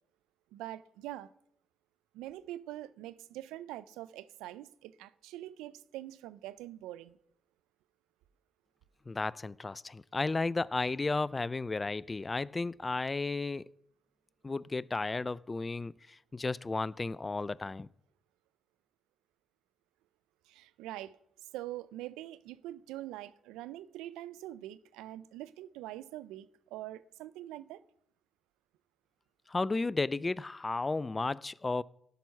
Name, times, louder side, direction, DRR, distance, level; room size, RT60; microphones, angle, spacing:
voice 1, 0.5-1.3 2.1-7.2 20.5-21.2 21.5-27.8, right 14 dB, 90° right, 0.4 m, -44 dB
voice 2, 9.1-13.7 14.4-17.9 29.5-31.8, left 3 dB, 30° left, 0.4 m, -33 dB
12.0 x 6.1 x 5.6 m
supercardioid pair, 45°, 0 cm